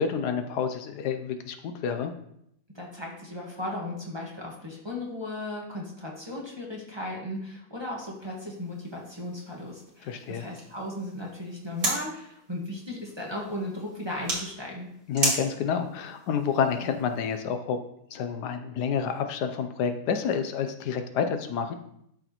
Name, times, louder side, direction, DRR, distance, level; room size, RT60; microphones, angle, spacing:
voice 1, 0.0-2.1 10.0-10.4 15.1-17.8 18.1-21.8, left 7 dB, 80° left, 8 dB, 1.3 m, -29 dB
voice 2, 2.7-14.9, left 1 dB, 15° right, -4 dB, 1.3 m, -36 dB
sound 1, 8.0-17.4, right 2 dB, 65° right, 2.5 m, -36 dB
12.0 x 4.7 x 3.0 m, 0.75 s
omnidirectional pair, 1.7 m